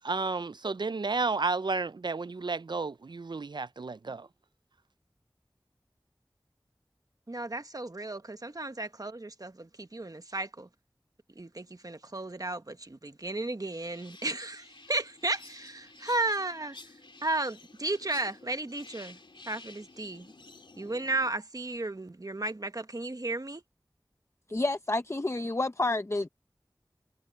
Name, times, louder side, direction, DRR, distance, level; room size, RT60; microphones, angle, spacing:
voice 1, 0.0-4.3, right 4 dB, 60° right, 0.4 m, -32 dB
voice 2, 7.3-10.7 11.3-19.2 19.5-20.3 20.8-23.6, right 2 dB, 45° right, 1.2 m, -34 dB
sound 1, 13.7-21.3, left 3 dB, 80° left, 2.7 m, -52 dB
voice 3, 24.5-26.3, left 2 dB, 35° left, 0.6 m, -29 dB
wide cardioid pair, 50°, 8 cm